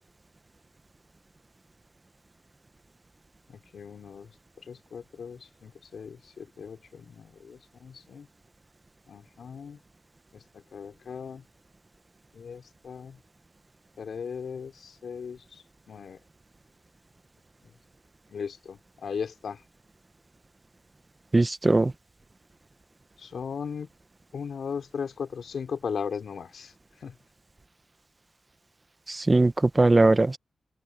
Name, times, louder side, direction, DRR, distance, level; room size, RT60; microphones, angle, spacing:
voice 1, 3.5-4.3 4.7-8.3 9.1-9.8 10.3-11.4 12.3-13.2 14.0-16.2 18.3-19.6 23.2-23.9 24.3-26.7 27.0-27.1, left 6 dB, 65° left, 4.1 m, -37 dB
voice 2, 21.3-21.9 29.1-30.4, right 2 dB, 20° right, 0.9 m, -20 dB
open air
wide cardioid pair, 135°, 0 cm